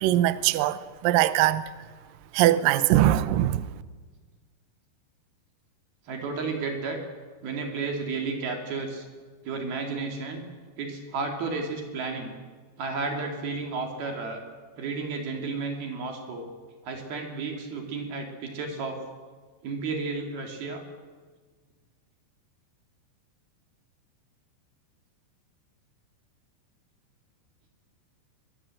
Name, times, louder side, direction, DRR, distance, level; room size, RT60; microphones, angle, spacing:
voice 1, 0.0-1.6 2.3-3.7, right 13 dB, 90° right, 1.9 m, -22 dB
voice 2, 6.1-7.0 7.4-9.1 9.4-10.4 10.8-12.3 12.8-14.4 14.8-16.5 16.8-19.0 19.6-20.8, right 4 dB, 60° right, 4.2 m, -32 dB
23.0 x 22.0 x 7.7 m
omnidirectional pair, 5.2 m